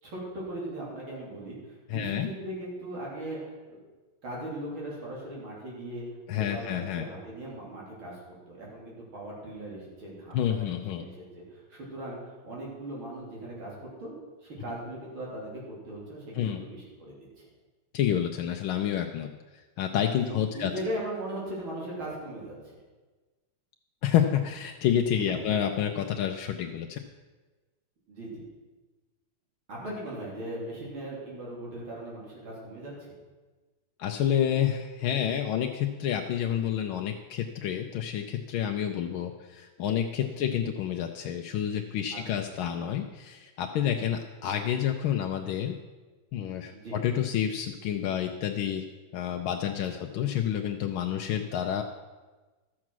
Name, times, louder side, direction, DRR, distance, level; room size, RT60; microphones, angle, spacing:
voice 1, 0.0-3.8 4.2-6.1 6.4-11.1 11.4-14.1 14.4-17.1 20.2-22.8 25.1-25.6 28.1-28.4 29.7-32.9 42.1-42.2 43.8-44.1 46.7-47.0 49.9-50.0, right 1 dB, 75° right, -4 dB, 4.0 m, -39 dB
voice 2, 1.9-2.3 6.3-7.1 10.3-11.0 16.3-16.6 17.9-19.3 19.8-20.7 24.0-27.0 34.0-45.7 46.3-48.8 49.1-51.8, left 10 dB, 80° left, 4 dB, 1.5 m, -29 dB
12.5 x 7.4 x 6.1 m, 1.3 s
omnidirectional pair, 2.3 m